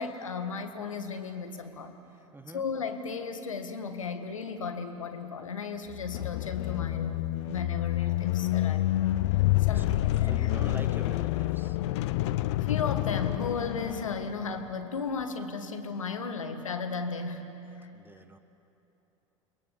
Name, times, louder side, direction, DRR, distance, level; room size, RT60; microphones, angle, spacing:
voice 1, 0.0-1.9 2.5-9.4 9.7-10.5 12.6-17.5 17.8-17.9, left 5 dB, 80° left, 7 dB, 1.6 m, -35 dB
voice 2, 2.3-2.6 9.7-9.8 10.2-11.8 17.9-18.4, right 2 dB, 10° right, 9 dB, 1.5 m, -44 dB
sound 1, 5.9-14.7, left 16 dB, 60° left, 0.6 m, -28 dB
29.5 x 22.0 x 7.1 m, 2.9 s
figure-of-eight pair, 70°, 17 cm